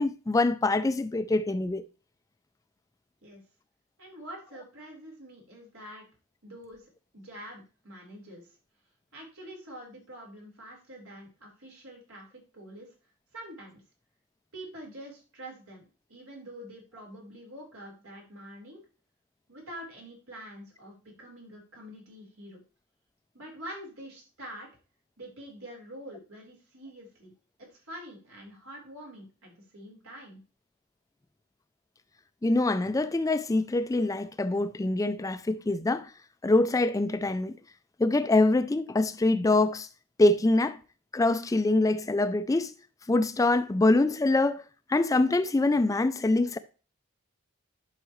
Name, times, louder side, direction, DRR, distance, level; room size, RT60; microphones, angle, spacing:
voice 1, 0.0-1.8 32.4-36.1 36.4-37.5 38.0-39.9 40.2-40.8 41.1-42.7 43.1-44.6 44.9-46.6, left 2 dB, 15° left, 0.3 m, -24 dB
voice 2, 4.0-6.1 6.4-8.5 9.1-12.9 13.3-13.8 14.5-18.8 19.5-22.6 23.3-24.7 25.2-27.3 27.7-30.4, equal, 85° right, 4.0 m, -46 dB
11.0 x 5.7 x 3.1 m
head